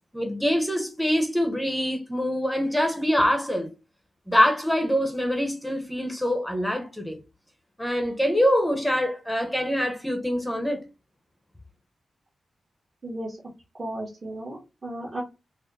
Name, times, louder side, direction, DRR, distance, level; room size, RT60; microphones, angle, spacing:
voice 1, 0.1-3.7 4.3-7.2 7.8-10.8, equal, 5° left, 0.9 m, -24 dB
voice 2, 13.0-13.4 13.8-15.2, right 1 dB, 30° right, 1.2 m, -34 dB
4.6 x 2.1 x 3.2 m
wide cardioid pair, 105°, 0 cm